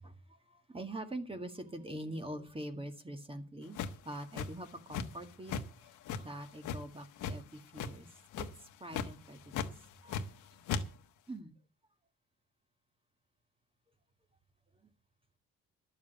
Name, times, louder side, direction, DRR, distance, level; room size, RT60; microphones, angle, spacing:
voice 1, 0.0-3.8 4.0-8.1 8.4-8.5 8.8-9.5 10.0-10.2 10.5-10.6 11.3-11.5, right 1 dB, 20° right, 1.7 m, -44 dB
sound 1, 3.7-5.2 5.5-5.7 6.1-7.4 7.7-8.0 8.3-8.6 8.9-9.1 9.5-10.4 10.7-10.8, left 6 dB, 80° left, 1.3 m, -36 dB
11.5 x 7.2 x 8.2 m
cardioid pair, 90°, 30 cm